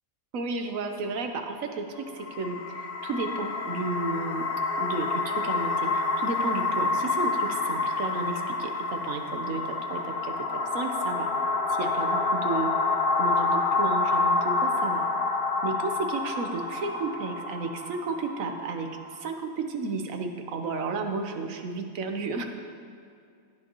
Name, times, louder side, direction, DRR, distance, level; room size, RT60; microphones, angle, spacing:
voice 1, 0.3-4.5 4.8-11.3 11.7-12.7 13.1-15.0 15.6-22.4, right 3 dB, 70° right, 5 dB, 1.3 m, -33 dB
sound 1, 2.1-19.2, left 3 dB, 55° left, 0.7 m, -28 dB
15.5 x 9.1 x 3.0 m, 2.4 s
omnidirectional pair, 1.5 m